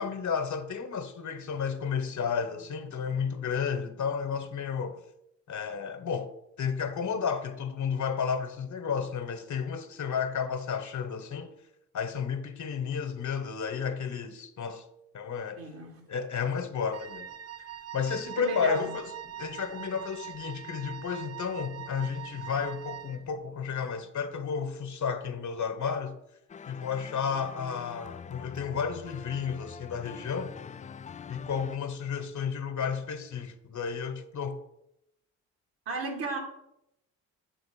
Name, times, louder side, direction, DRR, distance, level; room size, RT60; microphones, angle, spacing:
voice 1, 0.0-5.0 5.5-11.5 11.9-14.9 15.1-15.6 16.1-17.3 17.6-19.1 19.4-26.2 26.7-30.5 31.3-34.6, left 6 dB, 50° left, 1.1 m, -32 dB
voice 2, 15.6-16.0 18.4-18.9 35.9-36.4, right 3 dB, 70° right, 2.5 m, -34 dB
Wind instrument woodwind instrument, 16.9-23.3, right 10 dB, 40° right, 0.5 m, -43 dB
sound 1, 26.5-31.8, left 7 dB, 20° left, 0.3 m, -44 dB
8.1 x 3.9 x 6.9 m
hypercardioid pair, 50°, 39 cm